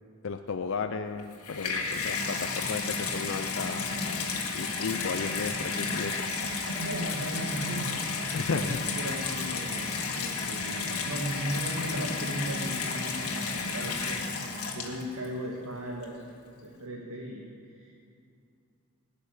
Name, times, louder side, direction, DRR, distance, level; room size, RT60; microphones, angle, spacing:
voice 1, 0.2-6.3 8.2-8.8 13.5-13.6, left 5 dB, 60° left, 7 dB, 0.5 m, -34 dB
Water tap faucet / Bathtub (filling or washing), 1.2-15.3 16.0-16.1, left 4 dB, 85° left, 1.9 m, -32 dB
voice 2, 6.8-9.9 10.2-16.2 16.6-17.9, right 1 dB, 90° right, -2 dB, 1.7 m, -37 dB
18.5 x 6.8 x 10.0 m, 2.4 s
head